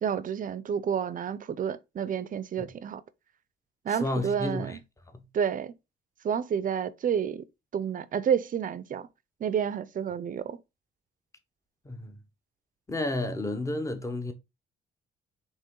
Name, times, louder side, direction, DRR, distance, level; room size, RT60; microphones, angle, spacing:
voice 1, 0.0-3.0 3.8-4.8 5.3-5.7 6.2-7.4 7.7-9.1 9.4-10.6, right 8 dB, 45° right, 0.5 m, -30 dB
voice 2, 3.9-4.8 5.1-5.3 11.8-12.2 12.9-14.3, left 2 dB, 15° left, 0.9 m, -32 dB
4.1 x 3.0 x 3.7 m
cardioid pair, 90°, 20 cm